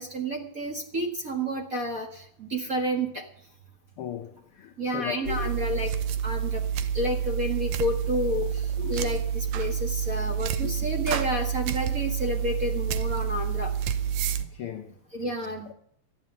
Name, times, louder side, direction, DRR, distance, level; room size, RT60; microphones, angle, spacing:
voice 1, 0.0-3.3 4.8-5.9 6.2-6.6 6.9-13.7 15.1-15.7, equal, 35° right, 1.5 m, -30 dB
voice 2, 4.0-5.5 8.8-9.1 10.6-10.7 14.4-14.9, left 11 dB, 70° left, 1.3 m, -37 dB
sound 1, 5.2-14.4, right 8 dB, 75° right, 2.2 m, -28 dB
13.5 x 11.0 x 7.5 m
omnidirectional pair, 3.5 m